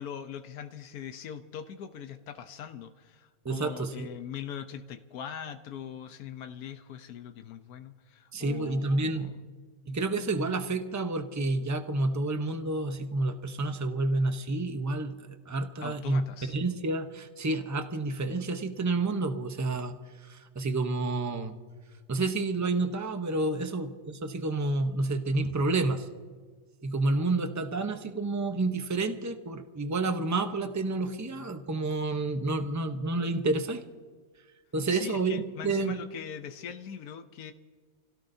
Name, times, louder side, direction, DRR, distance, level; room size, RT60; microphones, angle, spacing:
voice 1, 0.0-9.4 15.8-16.6 34.9-37.5, left 8 dB, 90° left, 8 dB, 1.3 m, -41 dB
voice 2, 3.4-4.1 8.3-9.3 9.9-15.2 15.5-16.2 16.5-20.0 20.2-21.5 22.1-26.1 26.8-33.8 34.7-36.0, right 2 dB, 15° right, 7 dB, 0.6 m, -29 dB
30.0 x 16.5 x 2.7 m, 1.5 s
omnidirectional pair, 1.6 m